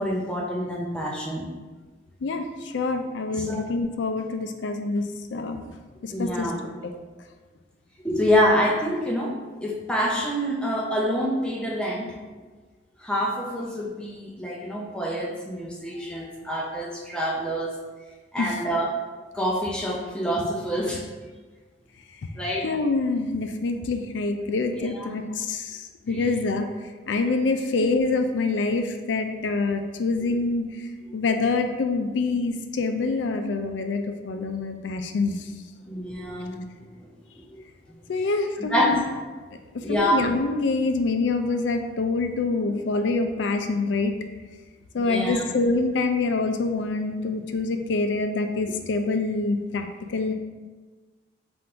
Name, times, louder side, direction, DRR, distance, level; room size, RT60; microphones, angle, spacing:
voice 1, 0.0-1.4 3.3-3.6 6.1-6.6 8.0-12.1 13.0-17.8 18.3-19.0 19.3-21.0 22.4-22.7 24.7-25.2 26.1-26.3 30.2-30.4 35.9-36.6 37.5-37.6 38.6-39.0 39.8-40.2 45.0-45.4, equal, 5° left, -2 dB, 0.5 m, -26 dB
voice 2, 2.7-5.6 6.0-6.5 6.8-6.9 18.4-18.5 22.6-25.8 26.1-26.7 27.1-30.7 31.1-35.4 38.1-39.0 39.7-44.1 44.9-49.9 50.1-50.3, left 3 dB, 75° left, 6 dB, 0.4 m, -26 dB
3.7 x 2.6 x 4.4 m, 1.3 s
head